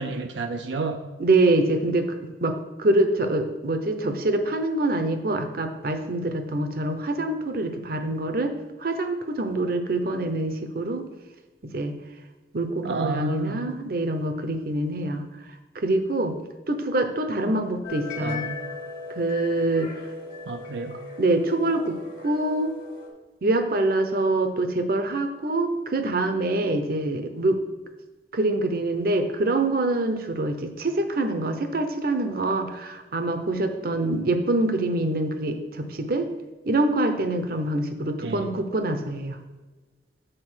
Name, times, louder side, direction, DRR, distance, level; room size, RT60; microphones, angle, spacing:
voice 1, 0.0-1.0 12.8-13.7 17.5-17.6 18.2-18.6 20.5-21.0 38.2-38.5, right 4 dB, 85° right, 6 dB, 0.5 m, -31 dB
voice 2, 1.2-2.1 2.4-8.5 8.8-11.1 11.7-11.9 12.5-15.3 15.7-16.3 16.7-18.4 19.2-19.9 21.2-22.7 23.4-27.6 28.3-36.3 36.7-39.4, right 2 dB, 55° right, 7 dB, 0.8 m, -25 dB
sound 1, 17.8-23.1, left 4 dB, 55° left, 1.6 m, -38 dB
7.8 x 4.1 x 6.2 m, 1.2 s
head